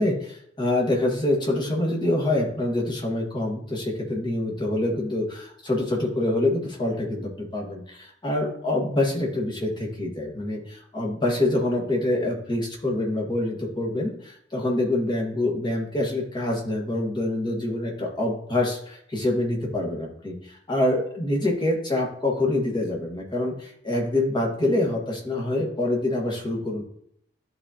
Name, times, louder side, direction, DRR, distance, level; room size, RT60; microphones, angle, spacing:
voice 1, 0.0-26.8, left 1 dB, 25° left, -1 dB, 1.4 m, -26 dB
11.0 x 3.8 x 2.8 m, 0.68 s
head